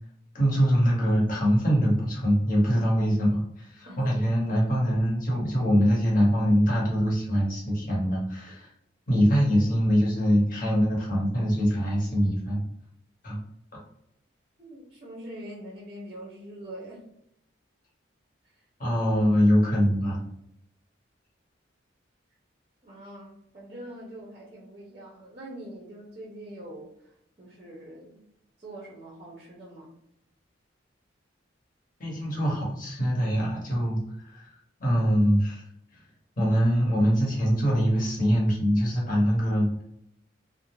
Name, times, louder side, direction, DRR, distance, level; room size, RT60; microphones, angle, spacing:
voice 1, 0.3-8.7 9.1-12.6 13.2-13.4 18.8-20.2 32.0-34.5 34.8-35.6 36.4-39.8, equal, 45° left, -4 dB, 0.9 m, -23 dB
voice 2, 14.6-17.1 22.8-27.1 27.4-28.2 28.6-29.9, right 1 dB, 30° right, -4 dB, 0.6 m, -43 dB
2.4 x 2.1 x 2.9 m, 0.74 s
head